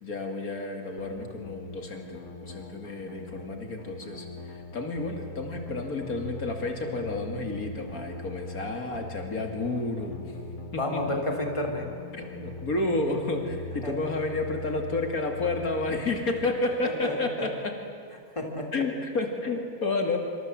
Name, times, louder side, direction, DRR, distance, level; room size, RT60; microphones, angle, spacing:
voice 1, 0.0-10.3 10.7-11.0 12.1-17.7 18.7-20.2, left 2 dB, 75° left, 3 dB, 2.9 m, -31 dB
sound 1, 1.0-15.9, left 2 dB, 55° left, 2.0 m, -42 dB
voice 2, 10.7-11.9 13.8-13.9 16.8-17.5 18.3-18.7, left 1 dB, 20° left, 2 dB, 3.1 m, -31 dB
26.5 x 25.5 x 7.7 m, 2.3 s
omnidirectional pair, 1.5 m